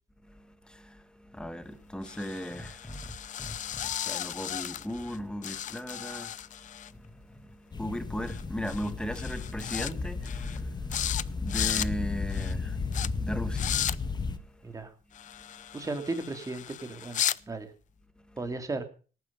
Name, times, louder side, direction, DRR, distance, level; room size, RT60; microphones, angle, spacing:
voice 1, 0.2-14.8 15.3-15.8 17.4-17.6 18.3-18.5, equal, 5° left, 1.7 m, -39 dB
sound 1, 2.0-5.2 5.4-6.9 8.3-8.4 8.7-8.9 9.2-9.9 10.2-10.6 10.9-11.2 11.5-11.9 12.3-12.5 12.9-13.1 13.5-14.0 15.1-17.4, left 11 dB, 45° left, 0.6 m, -35 dB
sound 2, 7.7-14.4, left 4 dB, 25° left, 1.5 m, -34 dB
voice 2, 15.7-17.7 18.4-18.9, right 3 dB, 20° right, 2.9 m, -35 dB
18.5 x 9.5 x 5.5 m
cardioid pair, 110°, 17 cm